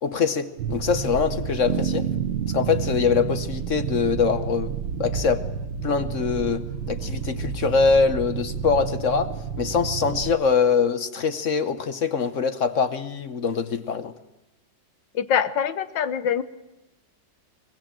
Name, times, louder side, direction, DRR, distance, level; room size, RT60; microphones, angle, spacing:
voice 1, 0.0-2.1 2.5-4.7 5.0-5.5 5.8-9.3 9.6-14.1, left 5 dB, 50° left, 11 dB, 1.1 m, -23 dB
sound 1, 0.6-10.3, right 6 dB, 80° right, 1.7 m, -31 dB
sound 2, 1.7-5.6, right 8 dB, 50° right, 1.4 m, -31 dB
voice 2, 15.1-16.4, left 8 dB, 80° left, 14 dB, 1.7 m, -24 dB
23.0 x 20.5 x 7.6 m, 0.96 s
omnidirectional pair, 2.0 m